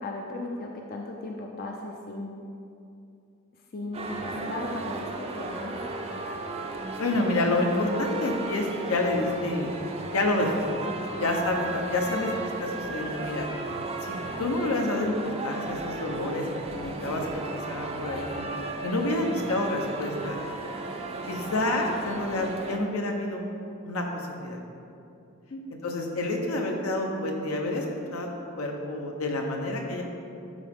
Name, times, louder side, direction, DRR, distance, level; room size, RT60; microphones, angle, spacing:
voice 1, 0.0-2.4 3.7-5.8 12.1-12.3 25.5-25.6, left 2 dB, 45° left, 1 dB, 0.5 m, -36 dB
sound 1, 3.9-22.8, right 2 dB, 30° right, 0.5 m, -35 dB
voice 2, 7.0-9.7 10.1-10.8 11.2-12.3 12.6-13.5 14.1-16.4 16.7-18.4 18.8-20.4 21.3-23.5 23.8-24.6 25.8-27.8 28.1-28.3 28.6-30.0, left 2 dB, 80° left, 1 dB, 1.0 m, -28 dB
11.5 x 3.9 x 3.7 m, 2.6 s
head